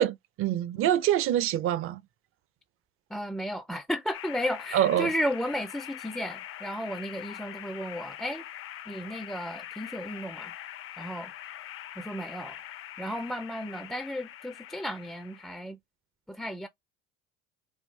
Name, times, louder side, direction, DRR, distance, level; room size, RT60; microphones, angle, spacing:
voice 1, 0.0-2.0 4.7-5.1, right 11 dB, 50° right, 0.5 m, -25 dB
voice 2, 3.1-8.4 8.9-10.5 11.0-11.3 12.0-12.6 13.0-15.8 16.3-16.7, equal, ahead, 0.4 m, -34 dB
sound 1, 4.1-15.6, left 12 dB, 45° left, 0.6 m, -43 dB
3.6 x 2.3 x 3.2 m
supercardioid pair, 80°, 29 cm